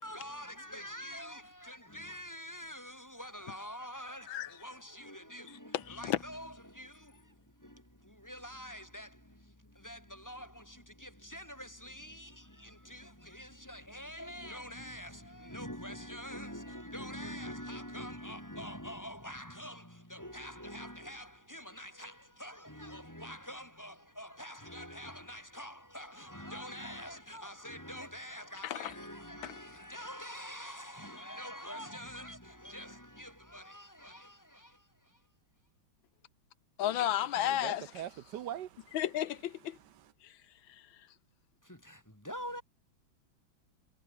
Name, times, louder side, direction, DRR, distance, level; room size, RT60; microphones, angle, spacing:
voice 1, 0.0-35.2 41.6-42.6, equal, 10° left, 5.4 m, -45 dB
voice 2, 5.7-6.2 28.6-28.9 29.4-29.6 36.8-38.0 38.9-39.8 40.2-40.3 40.7-40.8, left 12 dB, 80° left, 1.7 m, -33 dB
voice 3, 37.5-39.0, right 11 dB, 65° right, 1.4 m, -42 dB
omnidirectional pair, 2.1 m